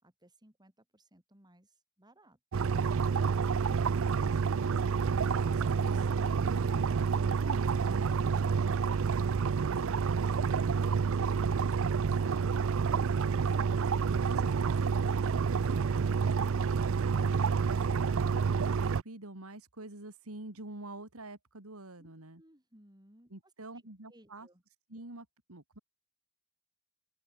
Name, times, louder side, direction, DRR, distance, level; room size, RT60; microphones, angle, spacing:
voice 1, 0.0-2.7 22.0-23.3 24.1-24.6, right 1 dB, 20° right, 5.2 m, -60 dB
sound 1, 2.5-19.0, right 5 dB, 65° right, 0.4 m, -29 dB
voice 2, 4.0-9.2 9.6-12.6 14.0-18.3 18.6-22.4 23.3-24.5 24.9-25.8, right 2 dB, 85° right, 3.0 m, -47 dB
open air
head